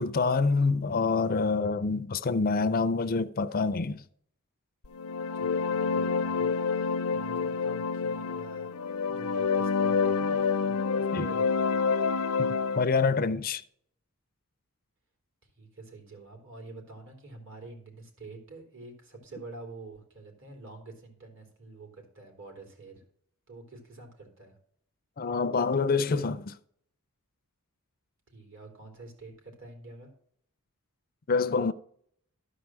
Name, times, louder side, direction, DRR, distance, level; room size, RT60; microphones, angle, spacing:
voice 1, 0.0-4.0 11.1-11.3 12.4-13.6 25.2-26.6 31.3-31.7, left 4 dB, 40° left, 0.5 m, -26 dB
sound 1, 4.9-12.8, left 5 dB, 80° left, 0.6 m, -28 dB
voice 2, 5.3-8.7 9.0-11.8 15.5-23.0 23.5-24.6 28.3-30.1, right 3 dB, 60° right, 3.2 m, -47 dB
13.0 x 4.7 x 7.5 m
head